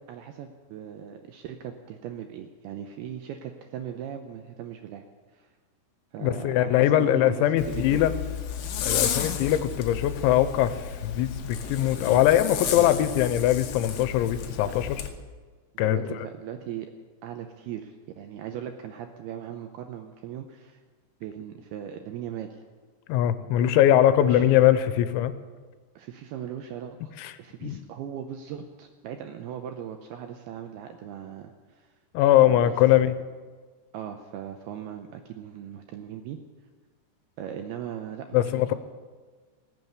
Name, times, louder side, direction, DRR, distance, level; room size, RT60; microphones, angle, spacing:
voice 1, 0.1-5.0 5.3-5.5 6.1-8.0 11.8-12.2 14.6-14.7 15.8-16.9 17.2-20.8 21.2-22.6 24.2-24.5 26.0-27.1 27.4-31.9 32.4-32.8 33.9-36.4 37.4-38.4 38.7-38.8, right 9 dB, 80° right, 5 dB, 2.3 m, -39 dB
voice 2, 6.2-8.1 8.8-15.0 15.8-16.3 23.1-25.3 27.2-27.3 27.6-27.8 32.1-33.1 38.3-38.7, left 12 dB, 90° left, 12 dB, 3.0 m, -22 dB
Zipper (clothing), 7.6-15.1, left 8 dB, 70° left, 2.1 m, -32 dB
19.0 x 7.6 x 8.1 m, 1.4 s
omnidirectional pair, 5.3 m